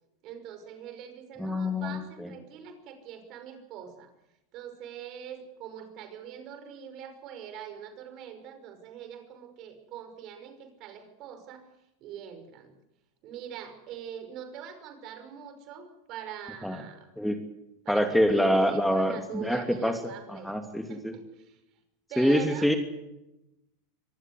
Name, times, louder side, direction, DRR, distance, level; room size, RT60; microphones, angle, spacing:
voice 1, 0.2-4.1 4.5-11.6 12.0-12.7 13.2-17.1 17.8-20.6 20.8-21.6 22.1-22.7, right 9 dB, 50° right, 8 dB, 5.6 m, -43 dB
voice 2, 1.4-2.0 16.6-16.8 17.2-17.4 17.9-19.9 20.3-21.1 22.2-22.8, equal, ahead, 6 dB, 2.8 m, -25 dB
24.5 x 19.5 x 8.0 m, 0.92 s
hypercardioid pair, 95°, 0 cm